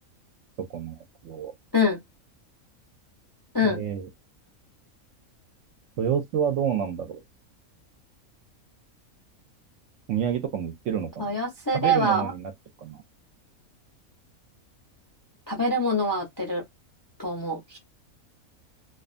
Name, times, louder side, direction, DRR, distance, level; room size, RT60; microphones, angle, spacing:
voice 1, 0.7-1.5 3.6-4.1 6.0-7.2 10.1-11.4 11.7-12.5 12.8-13.0, right 8 dB, 70° right, 0.8 m, -29 dB
voice 2, 11.2-12.3 15.5-16.6 17.2-17.8, left 1 dB, 30° left, 0.3 m, -25 dB
2.5 x 2.3 x 2.4 m
omnidirectional pair, 1.5 m